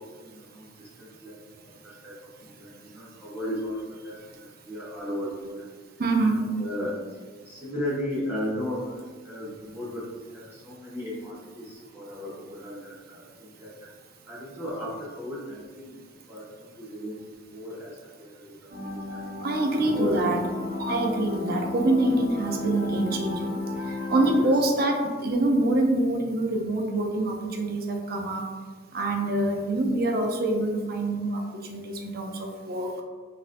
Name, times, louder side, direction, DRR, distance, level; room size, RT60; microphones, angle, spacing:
voice 1, 0.0-2.1 2.4-5.6 6.3-13.9 14.2-16.0 16.3-17.2 17.5-19.3 19.9-20.3 24.3-24.6, equal, 10° right, -10 dB, 1.1 m, -36 dB
voice 2, 6.0-6.4 19.4-20.4 20.8-23.5 24.1-28.4 28.9-31.4 31.7-32.9, right 2 dB, 55° right, 3 dB, 0.5 m, -25 dB
sound 1, 18.7-24.4, left 3 dB, 75° right, 1.0 m, -34 dB
4.2 x 2.6 x 2.6 m, 1.4 s
head